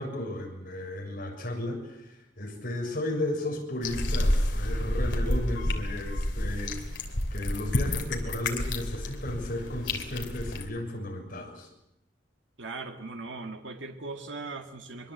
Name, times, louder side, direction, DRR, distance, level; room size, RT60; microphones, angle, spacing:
voice 1, 0.0-6.7 7.3-11.7, left 1 dB, 50° left, 0 dB, 6.9 m, -34 dB
sound 1, 3.8-10.6, left 1 dB, 65° left, 3.1 m, -29 dB
voice 2, 12.6-15.1, right 3 dB, 85° right, 4 dB, 1.9 m, -39 dB
23.5 x 23.0 x 8.1 m, 0.81 s
head